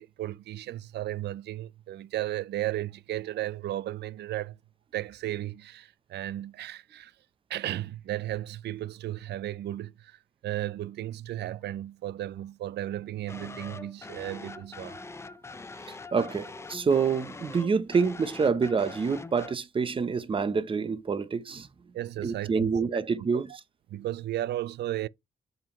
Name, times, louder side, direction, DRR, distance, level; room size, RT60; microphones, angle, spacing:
voice 1, 0.0-4.6 4.9-7.1 7.5-15.0 21.9-23.0 23.3-23.4 23.9-25.1, right 13 dB, 90° right, 0.4 m, -34 dB
sound 1, 13.3-19.5, left 3 dB, 15° left, 0.5 m, -43 dB
voice 2, 15.9-21.7 22.2-23.5, right 5 dB, 30° right, 0.8 m, -27 dB
7.5 x 5.3 x 3.1 m
wide cardioid pair, 150°, 17 cm